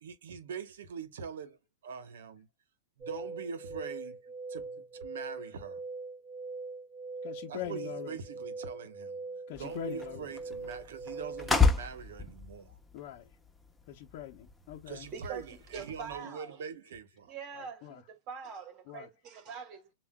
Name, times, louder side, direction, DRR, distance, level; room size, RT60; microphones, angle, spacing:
voice 1, 0.0-1.6 1.8-2.5 3.0-4.2 4.5-5.8 7.5-9.2 9.6-12.8 14.9-17.7, right 6 dB, 75° right, 1.0 m, -43 dB
sound 1, 3.0-11.5, right 3 dB, 20° right, 3.3 m, -42 dB
voice 2, 7.2-8.2 9.5-10.3 12.9-13.2 13.9-15.1 17.8-18.0 18.9-19.1, left 12 dB, 55° left, 0.8 m, -42 dB
sound 2, 9.5-16.2, left 4 dB, 5° left, 0.9 m, -33 dB
voice 3, 15.1-16.6 17.3-19.9, right 6 dB, 40° right, 1.8 m, -44 dB
7.0 x 2.5 x 2.2 m
hypercardioid pair, 120°, 0 cm